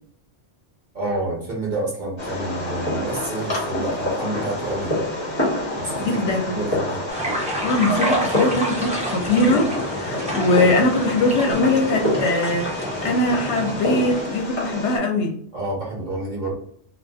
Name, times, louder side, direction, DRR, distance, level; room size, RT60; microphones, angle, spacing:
voice 1, 0.9-5.0 5.7-7.0 15.5-16.5, right 2 dB, 45° right, -3 dB, 0.8 m, -29 dB
Fireworks, 2.2-15.0, left 1 dB, 25° left, 0.9 m, -27 dB
voice 2, 6.0-6.6 7.6-15.3, left 2 dB, 75° left, 3 dB, 0.9 m, -21 dB
sound 1, 7.1-14.2, right 1 dB, 10° right, 0.5 m, -29 dB
2.4 x 2.3 x 2.3 m, 0.62 s
omnidirectional pair, 1.2 m